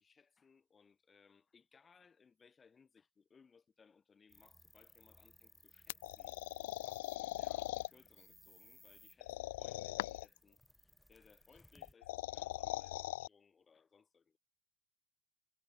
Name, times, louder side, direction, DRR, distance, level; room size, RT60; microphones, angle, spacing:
voice 1, 0.0-14.4, left 5 dB, 20° left, 7.5 m, -67 dB
sound 1, 4.3-11.9, left 1 dB, 5° left, 1.0 m, -64 dB
sound 2, 5.9-7.9 9.2-10.4 11.8-13.3, left 17 dB, 85° left, 0.3 m, -41 dB
supercardioid pair, 140°, 0 cm